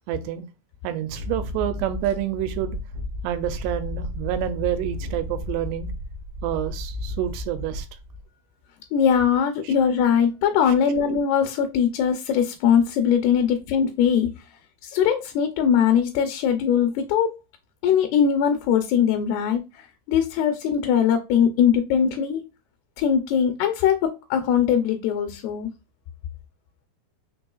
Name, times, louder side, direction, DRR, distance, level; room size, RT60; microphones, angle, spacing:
voice 1, 0.1-0.5 0.8-2.8 3.2-5.9 6.4-7.9 9.6-9.7 10.7-10.8, right 11 dB, 85° right, 2.7 m, -28 dB
Wind, 1.1-8.2, left 2 dB, 40° right, 1.1 m, -33 dB
voice 2, 8.9-14.3 14.8-17.3 17.8-22.4 23.0-25.7, left 8 dB, 80° left, 2.5 m, -21 dB
5.9 x 3.5 x 2.3 m
omnidirectional pair, 4.9 m